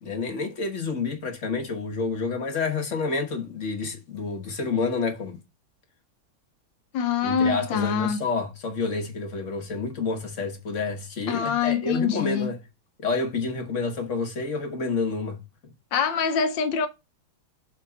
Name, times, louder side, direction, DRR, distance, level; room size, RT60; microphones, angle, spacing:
voice 1, 0.0-5.4 7.2-12.6 13.0-15.4, left 4 dB, 45° left, 1.1 m, -29 dB
voice 2, 6.9-8.2 11.3-12.5 15.9-16.9, left 6 dB, 70° left, 1.5 m, -24 dB
7.4 x 3.6 x 4.9 m
omnidirectional pair, 2.2 m